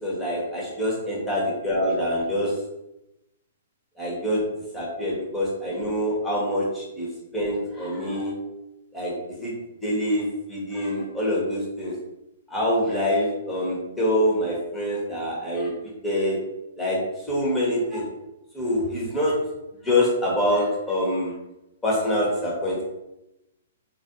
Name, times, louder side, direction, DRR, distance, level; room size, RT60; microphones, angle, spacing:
voice 1, 0.0-2.5 4.0-4.4 4.7-7.1 7.3-8.3 8.9-9.1 9.4-9.5 9.8-11.9 12.5-15.7 16.0-16.4 16.8-17.0 17.2-18.1 18.5-19.4 19.8-21.3 21.8-22.8, left 1 dB, 10° left, -5 dB, 1.1 m, -25 dB
3.9 x 2.5 x 2.6 m, 0.90 s
figure-of-eight pair, 115°, 0 cm